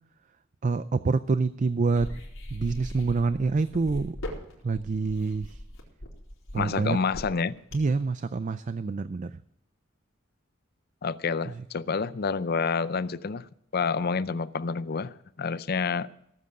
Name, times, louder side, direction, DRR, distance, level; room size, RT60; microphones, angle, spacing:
voice 1, 0.6-2.1 2.5-4.2 4.6-5.6 6.5-7.0 7.7-9.3, right 4 dB, 40° right, 0.4 m, -26 dB
sound 1, 2.0-8.0, left 1 dB, 80° left, 4.2 m, -39 dB
voice 2, 6.5-7.6 11.0-16.1, left 5 dB, 50° left, 0.5 m, -28 dB
18.0 x 7.9 x 6.6 m
head